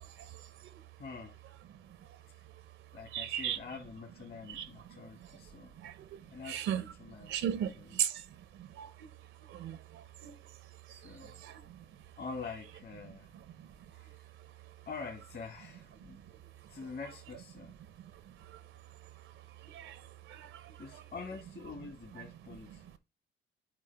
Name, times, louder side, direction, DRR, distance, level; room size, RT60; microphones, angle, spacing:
voice 1, 1.0-1.3 2.3-2.4 2.9-5.7 6.3-7.3 7.8-7.9 10.9-11.4 12.2-13.3 13.9-14.3 14.9-16.2 16.7-17.7 20.8-22.9, left 4 dB, 50° left, 1.8 m, -45 dB
voice 2, 3.1-3.6 4.5-4.7 5.8-6.2 6.4-6.9 7.3-8.2 8.6-8.9 9.5-10.3 11.2-11.6 19.6-20.0 20.3-21.0 22.1-22.3 22.7-22.8, right 10 dB, 85° right, 0.8 m, -37 dB
8.9 x 3.9 x 3.4 m
cardioid pair, 90°, 20 cm